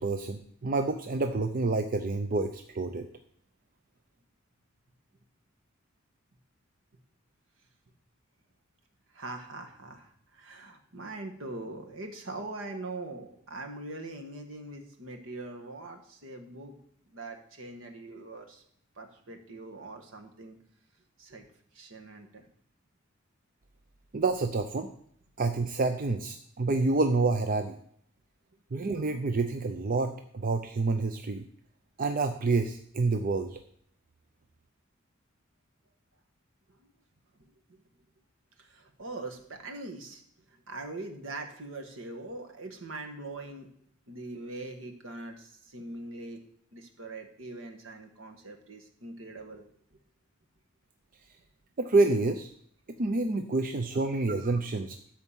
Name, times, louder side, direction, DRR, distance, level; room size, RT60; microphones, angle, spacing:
voice 1, 0.0-3.1 24.1-24.9 25.4-27.8 28.7-31.4 32.0-33.6 51.8-52.5 53.0-55.0, right 3 dB, 45° right, 7 dB, 0.6 m, -28 dB
voice 2, 9.1-16.7 17.1-18.6 19.0-20.6 21.2-21.5 21.7-22.4 38.6-40.2 40.7-43.7 44.1-46.4 46.7-49.6, right 2 dB, 70° right, 4 dB, 1.6 m, -42 dB
12.5 x 4.3 x 7.4 m, 0.66 s
head